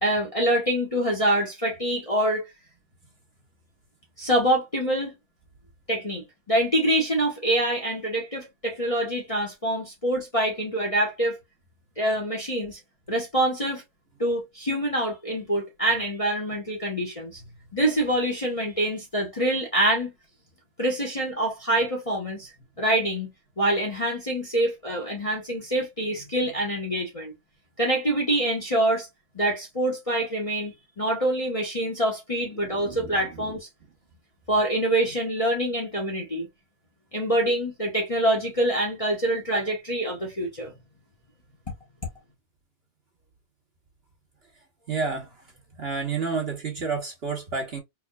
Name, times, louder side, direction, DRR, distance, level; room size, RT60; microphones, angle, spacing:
voice 1, 0.0-2.4 4.2-5.1 5.9-11.4 12.0-12.8 13.1-13.8 14.2-17.4 17.7-20.1 20.8-22.5 22.8-23.3 23.6-27.3 27.8-29.1 29.3-33.7 34.5-36.5 37.1-40.7, right 1 dB, 25° left, 0.9 m, -25 dB
voice 2, 32.6-33.6 44.9-45.3 45.8-47.8, right 4 dB, 45° right, 1.1 m, -30 dB
4.6 x 2.8 x 2.2 m
omnidirectional pair, 1.7 m